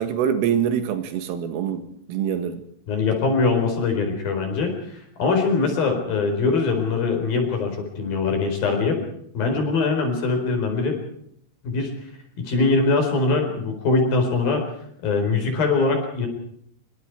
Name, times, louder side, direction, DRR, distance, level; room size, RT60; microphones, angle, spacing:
voice 1, 0.0-2.6, right 8 dB, 85° right, 4.4 m, -25 dB
voice 2, 2.9-9.0 9.3-11.0 11.6-11.9 12.4-14.6 15.0-16.3, left 3 dB, 50° left, 5.7 m, -22 dB
26.0 x 23.5 x 4.7 m
omnidirectional pair, 5.8 m